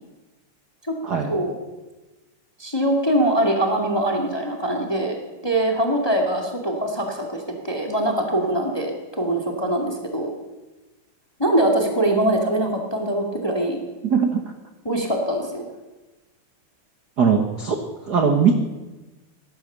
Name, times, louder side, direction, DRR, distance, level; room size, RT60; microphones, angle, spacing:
voice 1, 2.6-5.2 5.4-10.3 11.4-13.8 14.8-15.6, right 1 dB, 10° left, 1 dB, 1.5 m, -23 dB
voice 2, 17.2-17.8 18.1-18.5, right 6 dB, 55° right, 4 dB, 1.1 m, -19 dB
18.5 x 11.5 x 6.8 m, 1.1 s
omnidirectional pair, 3.7 m